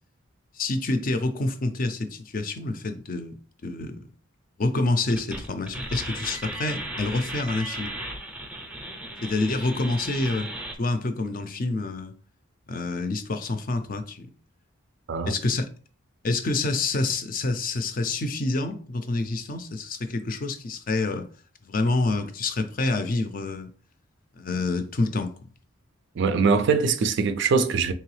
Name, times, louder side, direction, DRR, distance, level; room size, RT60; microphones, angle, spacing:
voice 1, 0.5-3.4 3.6-4.0 4.6-8.0 9.2-10.5 10.8-12.1 12.7-14.3 15.3-15.7 16.2-21.3 21.6-23.7 24.4-25.3, left 2 dB, 40° left, 0.4 m, -27 dB
sound 1, 5.1-10.7, right 1 dB, 5° right, 0.5 m, -36 dB
voice 2, 26.2-27.9, right 5 dB, 55° right, 0.4 m, -22 dB
3.8 x 3.1 x 3.1 m
head